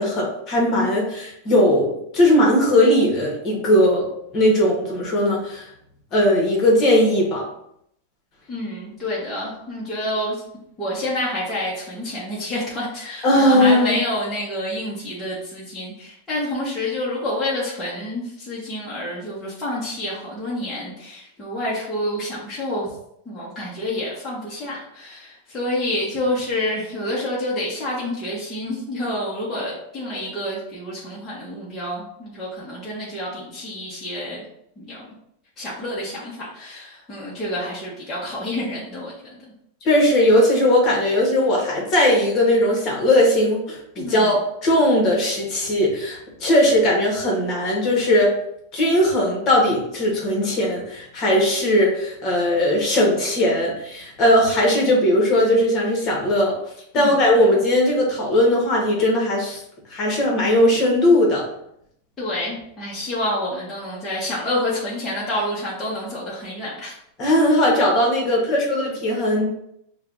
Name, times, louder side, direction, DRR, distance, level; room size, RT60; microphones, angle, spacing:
voice 1, 0.0-4.1 4.3-5.7 6.1-7.4 13.2-14.0 39.8-48.3 48.7-56.5 56.9-59.6 59.9-61.5 67.2-69.5, left 1 dB, 30° left, -2 dB, 1.2 m, -18 dB
voice 2, 8.5-10.4 10.8-22.9 23.3-34.4 34.8-35.1 35.6-39.1 44.0-44.3 56.9-57.1 62.2-67.0, left 1 dB, 10° left, -8 dB, 1.0 m, -28 dB
6.4 x 2.3 x 2.5 m, 0.75 s
supercardioid pair, 155°, 0 cm